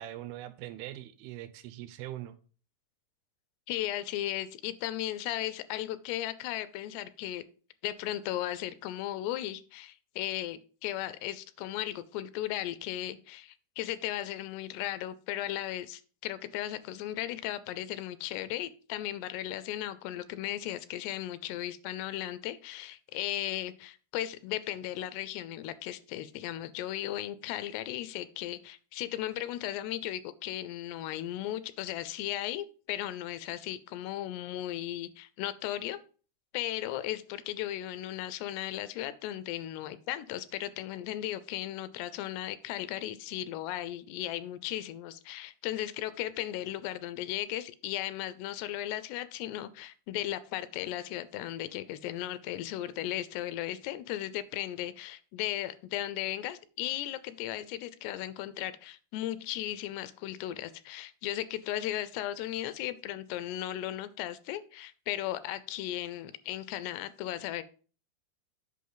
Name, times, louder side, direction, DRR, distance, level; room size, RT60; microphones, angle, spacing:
voice 1, 0.0-2.4, right 13 dB, 80° right, 2.3 m, -42 dB
voice 2, 3.7-7.4 7.8-36.0 36.5-67.6, left 13 dB, 85° left, 2.6 m, -36 dB
8.5 x 5.6 x 3.9 m
omnidirectional pair, 4.8 m